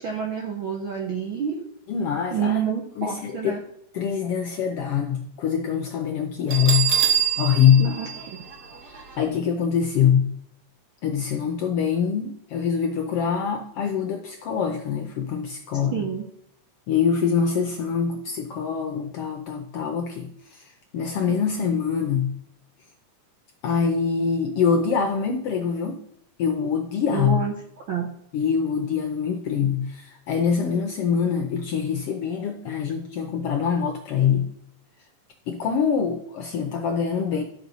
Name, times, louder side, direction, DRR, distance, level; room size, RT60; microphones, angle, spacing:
voice 1, 0.0-1.7 2.3-3.6 7.8-8.4 15.9-16.3 27.1-27.5 27.9-28.1, right 7 dB, 75° right, 1 dB, 1.1 m, -28 dB
voice 2, 1.9-2.6 3.0-3.6 3.9-6.9 7.4-7.9 8.8-10.3 11.0-16.1 16.9-22.3 23.6-26.0 26.4-27.4 28.3-34.5 35.5-37.4, left 7 dB, 80° left, 4 dB, 1.3 m, -24 dB
Bell, 6.5-9.2, right 9 dB, 55° right, 1.1 m, -25 dB
12.0 x 6.0 x 4.0 m, 0.71 s
omnidirectional pair, 3.5 m